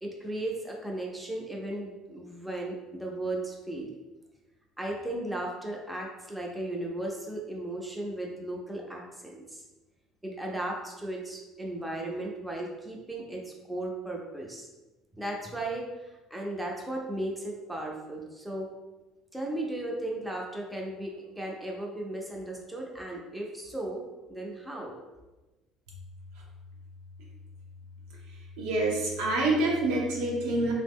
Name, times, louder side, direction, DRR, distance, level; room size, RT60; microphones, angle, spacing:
voice 1, 0.0-3.9 4.8-9.6 10.2-14.7 15.2-18.7 19.3-25.0, right 1 dB, 5° right, -2 dB, 0.5 m, -36 dB
voice 2, 28.6-30.7, right 2 dB, 90° right, -2 dB, 0.8 m, -26 dB
3.2 x 2.0 x 3.5 m, 1.1 s
cardioid pair, 135°, 0 cm